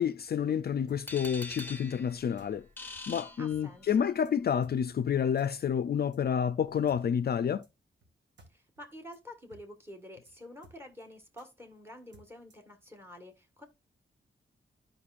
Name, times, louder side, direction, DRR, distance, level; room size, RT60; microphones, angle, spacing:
voice 1, 0.0-2.6 3.1-7.6, left 8 dB, 50° left, 0.4 m, -29 dB
sound 1, 0.9-1.0 1.6-1.7 2.4-2.5 3.1-3.2 3.5-3.6 3.9-4.0 4.2-4.3 4.6-4.8 5.4-5.5 6.1-6.2 6.9-7.0 7.6-7.7 8.0-8.1 8.4-8.5 8.8-8.9 9.1-9.2 9.5-9.6 9.9-10.0 10.2-10.3 10.6-11.0 11.4-11.5 12.1-12.7, right 1 dB, 65° right, 1.8 m, -58 dB
sound 2, 1.1-4.1, left 2 dB, 10° left, 0.8 m, -44 dB
voice 2, 3.4-4.1 8.5-13.6, left 1 dB, 10° right, 1.5 m, -49 dB
12.5 x 5.1 x 2.4 m
wide cardioid pair, 150°, 20 cm